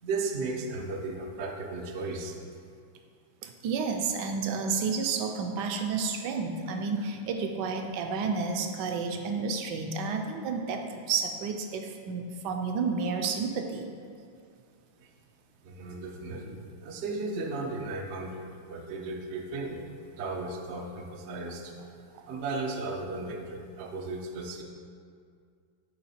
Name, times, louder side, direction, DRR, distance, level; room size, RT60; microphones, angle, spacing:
voice 1, 0.0-2.4 15.0-15.1 15.6-19.9 20.2-21.7 22.3-24.6, right 3 dB, 90° right, 2 dB, 0.5 m, -35 dB
voice 2, 3.4-13.9 22.1-22.2, right 5 dB, 75° right, 5 dB, 1.1 m, -31 dB
8.4 x 3.6 x 4.2 m, 2.2 s
omnidirectional pair, 2.0 m